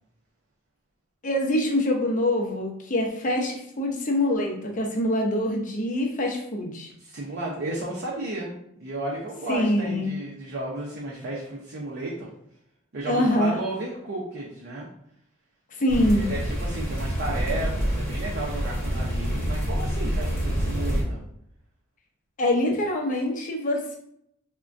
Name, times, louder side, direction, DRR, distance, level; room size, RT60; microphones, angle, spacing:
voice 1, 1.2-6.9 9.5-10.1 13.1-13.6 15.7-16.3 22.4-24.0, left 1 dB, 40° left, 1 dB, 0.6 m, -24 dB
voice 2, 7.0-8.5 8.8-12.3 12.9-14.9 16.1-21.2, right 2 dB, 55° right, -3 dB, 0.5 m, -33 dB
sound 1, 15.9-21.0, equal, 15° left, 0.9 m, -27 dB
3.4 x 2.2 x 2.5 m, 0.74 s
head